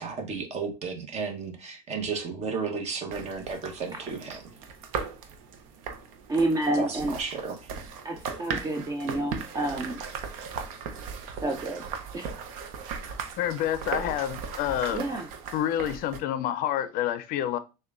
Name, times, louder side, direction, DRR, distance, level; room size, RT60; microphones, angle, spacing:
voice 1, 0.0-4.5 6.7-7.7, right 5 dB, 40° right, 0.9 m, -33 dB
sound 1, 3.1-16.2, right 6 dB, 80° right, 0.6 m, -38 dB
voice 2, 6.3-7.2 8.0-10.0 11.4-11.8 12.1-12.3 14.9-15.3, right 2 dB, 20° right, 0.4 m, -29 dB
voice 3, 13.4-15.0 15.5-17.6, left 11 dB, 55° left, 0.4 m, -28 dB
6.5 x 2.2 x 2.4 m
supercardioid pair, 110°, 17 cm